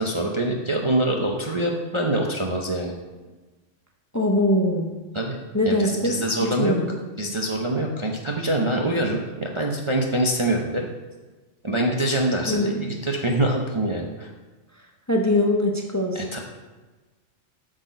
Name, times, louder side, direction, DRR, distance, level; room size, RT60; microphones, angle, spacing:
voice 1, 0.0-2.9 5.1-5.4 5.6-6.7 7.2-10.9 11.6-14.3 16.1-16.4, right 1 dB, 30° right, 0 dB, 0.7 m, -25 dB
voice 2, 4.1-5.0 5.5-6.1 6.4-6.9 9.0-9.1 12.5-12.8 15.1-16.2, left 1 dB, 15° left, 2 dB, 0.7 m, -22 dB
8.2 x 6.4 x 5.1 m, 1.2 s
omnidirectional pair, 1.3 m